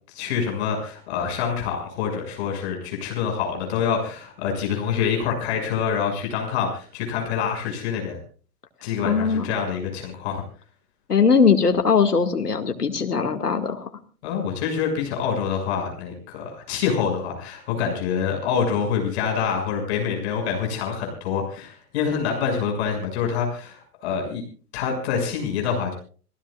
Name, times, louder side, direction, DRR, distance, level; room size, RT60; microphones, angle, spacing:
voice 1, 0.1-8.2 8.8-10.4 14.2-24.4 24.7-25.9, left 7 dB, 45° left, 2 dB, 6.6 m, -26 dB
voice 2, 9.0-9.6 11.1-13.9, left 5 dB, 75° left, 7 dB, 2.2 m, -20 dB
28.5 x 16.0 x 2.4 m, 0.40 s
figure-of-eight pair, 110°, 47 cm